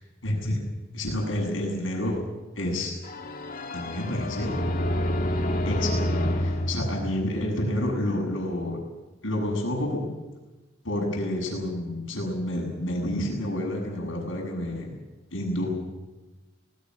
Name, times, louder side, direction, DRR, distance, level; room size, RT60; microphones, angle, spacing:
voice 1, 0.2-0.6 0.9-2.2 2.5-2.9 3.7-4.5 5.6-8.8 9.2-10.1 10.8-14.9 15.3-15.7, left 1 dB, 75° left, 1 dB, 7.8 m, -29 dB
sound 1, 3.0-7.8, left 1 dB, 45° left, 2.3 m, -28 dB
26.0 x 20.0 x 6.4 m, 1.2 s
head